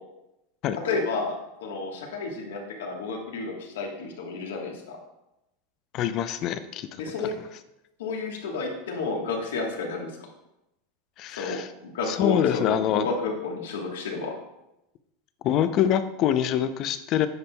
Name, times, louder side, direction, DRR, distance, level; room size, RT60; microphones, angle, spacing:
voice 1, 0.8-1.4 1.6-5.0 7.0-7.4 8.0-10.2 11.3-14.3, left 4 dB, 80° left, 2 dB, 1.3 m, -31 dB
voice 2, 5.9-6.9 11.2-11.7 12.1-13.1 15.4-17.3, left 10 dB, 50° left, 11 dB, 0.5 m, -25 dB
9.5 x 5.2 x 2.2 m, 0.90 s
hypercardioid pair, 100°, 0 cm